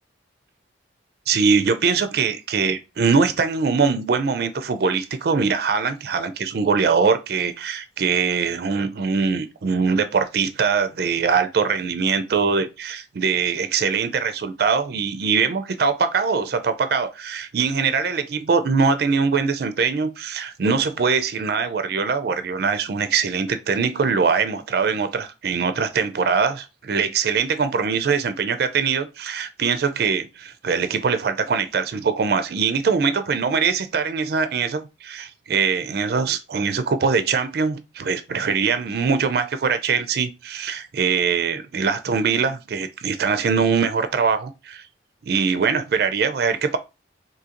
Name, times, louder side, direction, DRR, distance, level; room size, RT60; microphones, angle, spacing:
voice 1, 1.3-44.8 45.2-46.8, right 5 dB, 55° right, 0.4 m, -22 dB
3.7 x 2.7 x 2.8 m
head